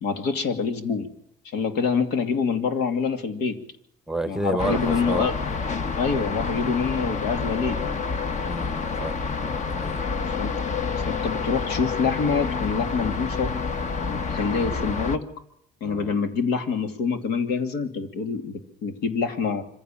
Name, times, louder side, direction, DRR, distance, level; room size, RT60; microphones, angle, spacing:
voice 1, 0.0-1.1 1.4-3.6 4.3-5.4 6.0-7.8 10.1-10.5 11.1-13.6 14.0-15.3 15.8-19.6, left 5 dB, 85° left, 2.6 m, -26 dB
voice 2, 4.1-5.3 8.4-10.0 15.8-16.2, right 2 dB, 5° right, 0.9 m, -31 dB
sound 1, 4.6-15.2, left 5 dB, 45° left, 1.5 m, -28 dB
25.5 x 15.5 x 7.3 m
cardioid pair, 110°, 17 cm